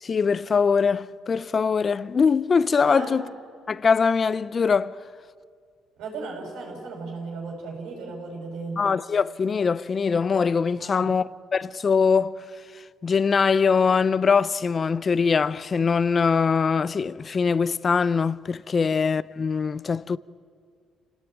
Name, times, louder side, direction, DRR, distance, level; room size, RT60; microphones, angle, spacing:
voice 1, 0.0-3.2 3.7-4.9 8.8-12.3 13.0-20.2, left 5 dB, 30° left, 0.5 m, -22 dB
voice 2, 2.8-3.2 6.0-8.9 10.8-11.1 18.7-18.9, right 3 dB, 80° right, 6.9 m, -36 dB
29.5 x 18.0 x 9.2 m
cardioid pair, 145°, 0 cm